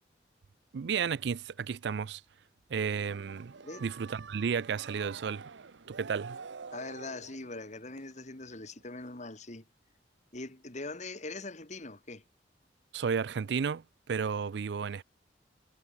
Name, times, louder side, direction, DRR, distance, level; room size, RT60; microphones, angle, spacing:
voice 1, 0.7-2.2 2.7-3.5 3.8-5.5 5.9-6.4 12.9-15.0, right 6 dB, 65° right, 0.4 m, -33 dB
sound 1, 2.9-8.8 9.1-9.2, right 5 dB, 80° right, 0.8 m, -48 dB
voice 2, 6.7-9.6 10.3-12.2, left 2 dB, 40° left, 2.5 m, -42 dB
head